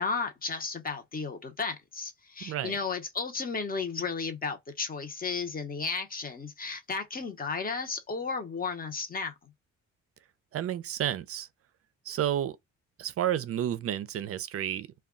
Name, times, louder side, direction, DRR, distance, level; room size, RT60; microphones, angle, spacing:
voice 1, 0.0-9.5, left 4 dB, 30° left, 0.8 m, -34 dB
voice 2, 2.4-2.7 10.5-11.5 12.1-12.6 13.0-14.9, right 11 dB, 50° right, 0.4 m, -31 dB
2.3 x 2.2 x 3.6 m
cardioid pair, 90°, 30 cm